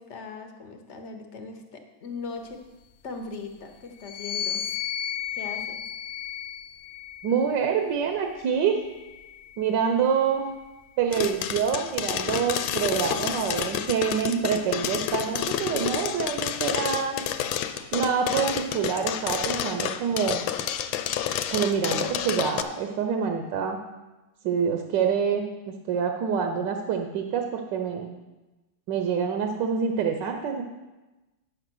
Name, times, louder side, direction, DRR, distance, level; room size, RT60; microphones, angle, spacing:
voice 1, 0.0-2.6 3.0-4.7 5.3-5.8, left 4 dB, 45° left, 5 dB, 1.0 m, -39 dB
sound 1, 4.0-7.6 8.4-10.0, left 9 dB, 70° left, 0.8 m, -35 dB
voice 2, 7.2-8.8 9.6-10.5 11.0-17.2 17.9-20.4 21.5-23.8 24.4-25.5 25.9-28.1 28.9-30.6, right 7 dB, 70° right, 4 dB, 1.3 m, -26 dB
sound 2, 11.1-22.6, left 10 dB, 85° left, 1.4 m, -29 dB
9.1 x 6.6 x 6.2 m, 1.1 s
omnidirectional pair, 2.1 m